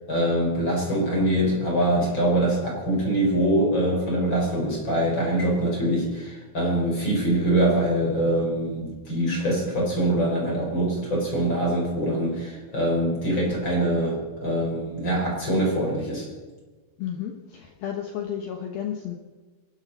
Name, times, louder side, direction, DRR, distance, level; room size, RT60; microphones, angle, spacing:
voice 1, 0.1-16.3, right 1 dB, 25° left, -2 dB, 5.0 m, -24 dB
voice 2, 17.0-19.2, left 9 dB, 75° left, 2 dB, 2.2 m, -32 dB
23.5 x 13.0 x 4.2 m, 1.3 s
omnidirectional pair, 5.8 m